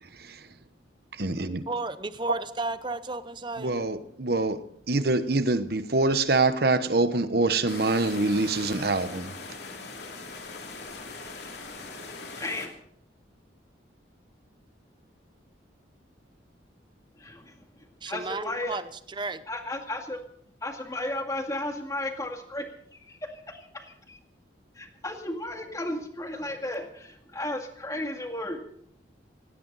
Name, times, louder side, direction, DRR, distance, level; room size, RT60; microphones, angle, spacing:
voice 1, 0.1-0.5 1.1-1.6 3.6-9.3, right 3 dB, 55° right, 12 dB, 1.1 m, -25 dB
voice 2, 1.5-3.7 18.0-19.4, right 3 dB, 25° right, 12 dB, 0.7 m, -33 dB
sound 1, 7.7-12.7, left 3 dB, 60° left, 2.9 m, -40 dB
voice 3, 12.3-12.7 17.2-17.6 18.1-18.8 19.5-20.2 20.6-22.7 22.9-24.2 24.8-28.6, left 1 dB, 20° left, 4 dB, 2.1 m, -34 dB
17.5 x 17.0 x 4.1 m, 0.66 s
head